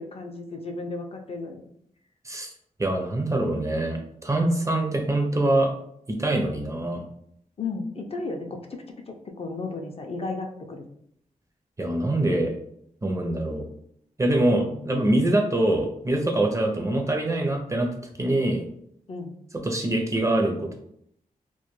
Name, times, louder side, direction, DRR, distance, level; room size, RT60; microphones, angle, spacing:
voice 1, 0.0-1.6 7.6-10.8 14.6-14.9 19.1-19.3, left 3 dB, 45° left, 3 dB, 0.4 m, -34 dB
voice 2, 2.8-5.7 6.1-7.0 11.8-12.5 13.0-13.6 14.2-17.9 18.2-18.6 19.6-20.8, right 1 dB, 20° right, 3 dB, 0.5 m, -24 dB
2.2 x 2.2 x 3.0 m, 0.71 s
cardioid pair, 75°, 14 cm